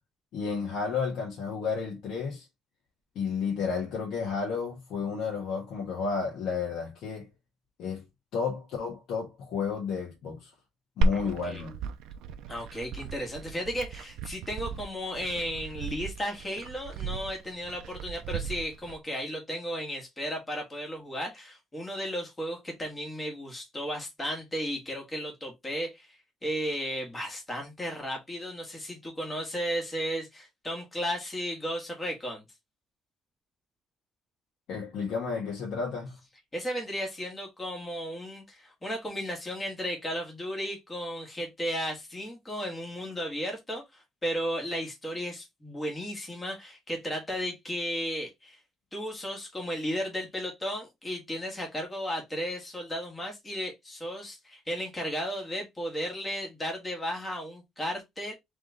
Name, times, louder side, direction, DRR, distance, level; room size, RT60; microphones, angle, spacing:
voice 1, 0.3-2.5 3.1-7.3 7.8-8.0 8.3-10.5 11.0-11.8 34.7-36.1, left 5 dB, 60° left, 1.6 m, -32 dB
Glass, 11.0-19.0, right 2 dB, 90° right, 0.5 m, -34 dB
voice 2, 11.1-11.6 12.5-32.4 36.5-48.6 48.9-58.3, equal, 15° left, 1.6 m, -34 dB
3.6 x 3.5 x 3.9 m
cardioid pair, 175°, 0 cm